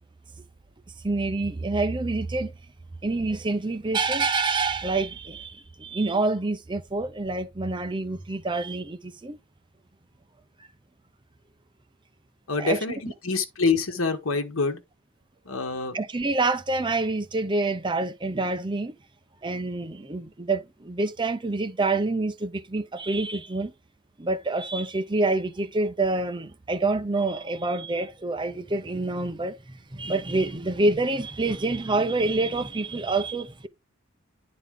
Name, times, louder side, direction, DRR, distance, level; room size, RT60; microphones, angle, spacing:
voice 1, 1.0-2.5 3.0-9.4 12.6-12.8 15.9-18.9 19.4-23.7 24.2-33.7, right 3 dB, 25° right, 0.7 m, -27 dB
voice 2, 12.5-14.8 15.5-16.0, left 4 dB, 80° left, 1.2 m, -26 dB
9.7 x 4.1 x 3.6 m
head